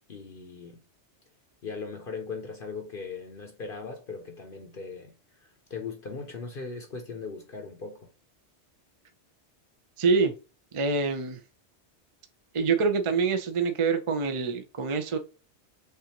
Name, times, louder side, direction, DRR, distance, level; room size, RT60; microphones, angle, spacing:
voice 1, 0.1-0.8 1.6-8.1, left 4 dB, 55° left, 0.9 m, -39 dB
voice 2, 10.0-10.3 10.7-11.4 12.5-15.2, right 4 dB, 35° right, 0.5 m, -25 dB
6.7 x 2.5 x 2.9 m
omnidirectional pair, 1.2 m